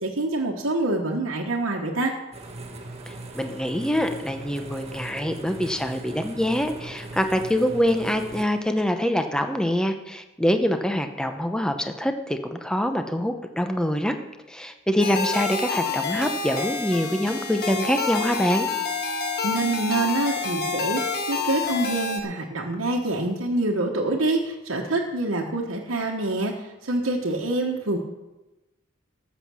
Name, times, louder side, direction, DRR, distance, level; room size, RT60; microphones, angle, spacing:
voice 1, 0.0-2.1 19.4-21.0 21.3-26.5 26.8-28.0, right 2 dB, 80° right, -1 dB, 1.3 m, -26 dB
sound 1, 2.3-8.4, right 2 dB, 30° right, 1.3 m, -39 dB
voice 2, 3.3-14.2 14.5-18.7, equal, 5° left, 7 dB, 0.8 m, -25 dB
sound 2, 15.0-22.2, left 4 dB, 50° left, 1.5 m, -28 dB
14.0 x 7.4 x 6.3 m, 1.0 s
head